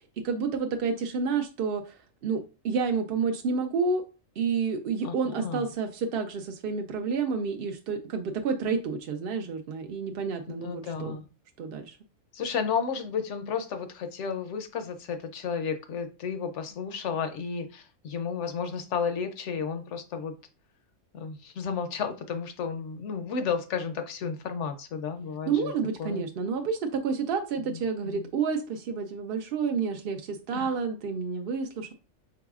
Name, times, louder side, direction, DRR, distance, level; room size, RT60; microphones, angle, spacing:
voice 1, 0.2-4.0 4.4-11.2 11.6-12.0 25.5-31.9, right 5 dB, 65° right, 5 dB, 0.6 m, -29 dB
voice 2, 5.0-5.6 10.6-11.2 12.3-20.3 21.1-25.7 26.0-26.2 27.7-27.8 28.0-28.2 30.5-30.8, left 6 dB, 65° left, 8 dB, 0.9 m, -32 dB
4.7 x 3.9 x 2.3 m, 0.32 s
omnidirectional pair, 1.4 m